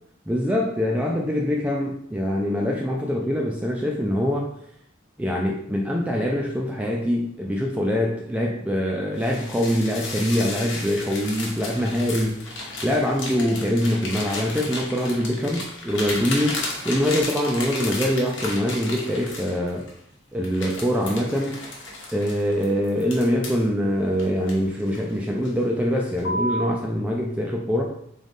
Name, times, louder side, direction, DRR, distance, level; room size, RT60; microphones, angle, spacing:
voice 1, 0.3-4.5 5.2-12.5 12.8-19.9 20.3-21.6 22.1-27.8, equal, 5° right, -1 dB, 0.3 m, -24 dB
sound 1, 9.2-19.9 20.4-23.7 24.2-25.1 25.4-25.7 26.2-26.7, left 2 dB, 60° left, 1.0 m, -33 dB
3.8 x 3.1 x 3.5 m, 0.69 s
head